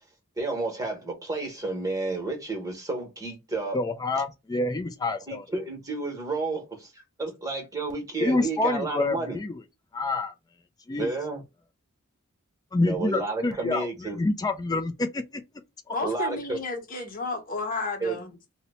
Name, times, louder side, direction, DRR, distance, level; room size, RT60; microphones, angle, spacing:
voice 1, 0.4-3.8 5.3-6.9 7.2-9.4 11.0-11.4 12.8-14.2 16.0-16.6 18.0-18.2, right 3 dB, 15° right, 0.9 m, -31 dB
voice 2, 3.7-5.5 8.2-9.6 9.9-10.3 10.9-11.1 12.7-15.4 15.9-16.0, left 2 dB, 15° left, 0.3 m, -27 dB
voice 3, 15.9-18.3, left 3 dB, 40° left, 0.8 m, -32 dB
2.7 x 2.1 x 4.0 m
head